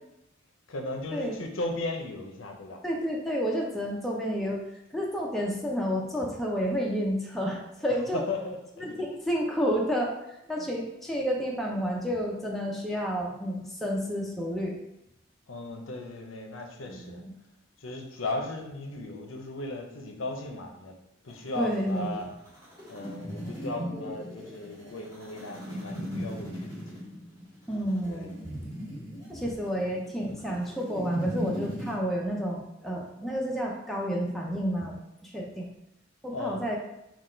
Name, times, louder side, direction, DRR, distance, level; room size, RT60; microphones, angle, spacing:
voice 1, 0.7-2.8 8.3-8.9 10.6-10.7 15.5-17.2 17.8-20.9 21.2-22.3 22.9-27.0 28.1-28.3 36.3-36.6, left 2 dB, 90° left, 3 dB, 0.7 m, -36 dB
voice 2, 2.8-4.6 4.9-8.2 8.8-14.8 16.9-17.3 21.6-22.3 27.7-28.6 29.3-35.7 36.2-36.8, equal, ahead, -2 dB, 0.5 m, -30 dB
sound 1, 21.3-31.9, equal, 20° right, 1.2 m, -38 dB
3.9 x 2.4 x 4.4 m, 0.84 s
head